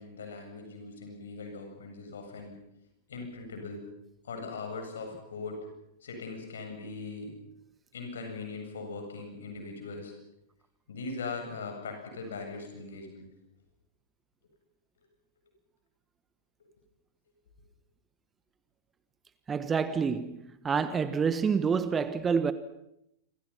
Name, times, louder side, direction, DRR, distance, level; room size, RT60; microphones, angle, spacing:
voice 1, 0.0-2.6 3.1-3.9 4.2-5.7 6.0-7.4 7.9-10.1 10.9-13.3, left 3 dB, 65° left, 7.9 m, -40 dB
voice 2, 19.5-22.5, right 6 dB, 20° right, 1.4 m, -28 dB
28.5 x 25.5 x 5.8 m
figure-of-eight pair, 95°, 0 cm